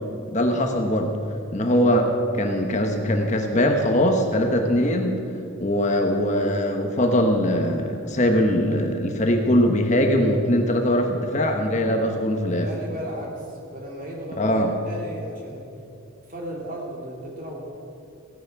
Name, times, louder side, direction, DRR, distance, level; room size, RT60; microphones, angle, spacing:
voice 1, 0.3-1.1 1.5-5.2 5.6-12.7 14.4-14.7, equal, 35° left, 3 dB, 1.0 m, -21 dB
voice 2, 11.8-12.2 12.5-15.6 16.3-17.6, right 1 dB, 40° right, -2 dB, 2.8 m, -35 dB
16.5 x 10.5 x 5.9 m, 2.6 s
head